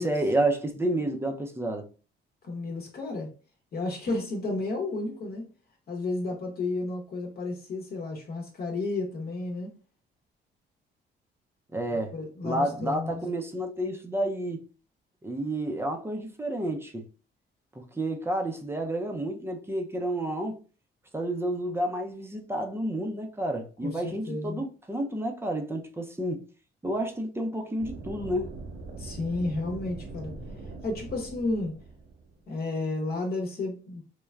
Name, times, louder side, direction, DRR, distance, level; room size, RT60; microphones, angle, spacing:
voice 1, 0.0-1.9 11.7-12.1 12.4-14.6 15.2-17.0 17.8-20.6 21.1-26.4 26.8-28.5, right 1 dB, 10° right, 0.5 m, -30 dB
voice 2, 2.4-3.3 3.7-5.5 5.9-9.7 12.1-13.2 23.8-24.6 29.0-30.3 30.8-31.7 32.5-34.0, left 2 dB, 50° left, 0.9 m, -32 dB
sound 1, 27.8-32.6, right 3 dB, 60° right, 0.8 m, -41 dB
3.2 x 2.2 x 2.3 m
cardioid pair, 90°, 20 cm